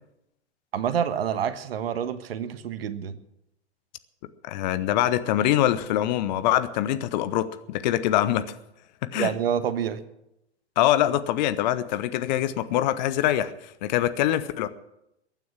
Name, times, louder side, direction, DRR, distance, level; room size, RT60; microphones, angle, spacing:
voice 1, 0.7-3.2 9.1-10.0, right 8 dB, 55° right, 12 dB, 1.4 m, -27 dB
voice 2, 4.4-8.5 9.0-9.3 10.8-14.7, left 12 dB, 40° left, 13 dB, 1.0 m, -24 dB
22.5 x 9.4 x 6.2 m, 0.84 s
figure-of-eight pair, 105°, 34 cm